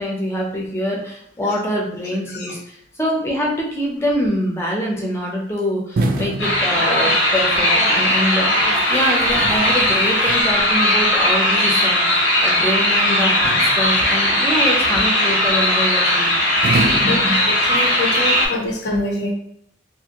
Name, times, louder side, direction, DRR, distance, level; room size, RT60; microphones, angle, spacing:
voice 1, 0.0-16.3 17.0-17.4 18.5-18.7, equal, 15° left, -2 dB, 0.6 m, -24 dB
sound 1, 6.0-7.4 8.7-10.8 13.4-14.3 16.6-18.1, right 2 dB, 50° right, 0.4 m, -27 dB
sound 2, 6.4-18.5, left 1 dB, 90° left, 0.9 m, -18 dB
voice 2, 17.6-19.3, left 2 dB, 65° left, 0 dB, 0.6 m, -24 dB
2.8 x 2.5 x 2.9 m, 0.71 s
head